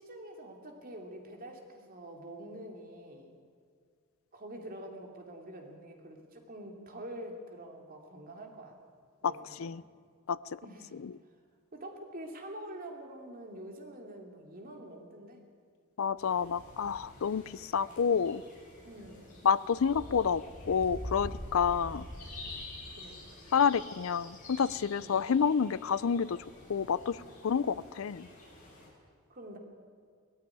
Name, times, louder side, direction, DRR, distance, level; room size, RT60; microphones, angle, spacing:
voice 1, 0.0-3.3 4.3-8.8 9.2-9.8 10.6-11.0 11.7-15.4 18.8-19.4 22.9-23.4 25.0-25.2 29.3-29.6, right 1 dB, 45° right, 2 dB, 2.8 m, -46 dB
voice 2, 16.0-18.4 19.4-22.0 23.5-26.4 26.7-27.2 27.4-28.3, left 6 dB, 75° left, 18 dB, 0.5 m, -29 dB
sound 1, 16.2-28.9, left 1 dB, 40° left, 7.2 m, -47 dB
18.5 x 14.5 x 10.0 m, 2.1 s
head